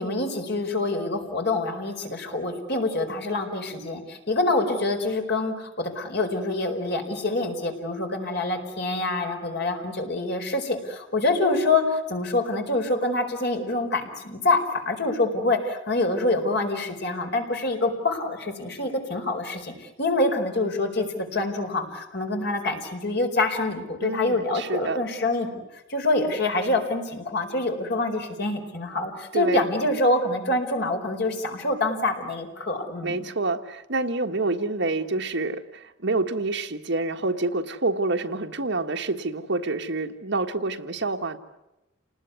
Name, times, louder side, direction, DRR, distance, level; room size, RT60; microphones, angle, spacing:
voice 1, 0.0-25.6 25.9-33.2, left 2 dB, 60° left, 4 dB, 4.6 m, -26 dB
voice 2, 24.0-25.0 29.3-29.7 33.0-41.4, right 2 dB, 65° right, 6 dB, 1.6 m, -27 dB
29.0 x 20.0 x 9.6 m, 0.93 s
head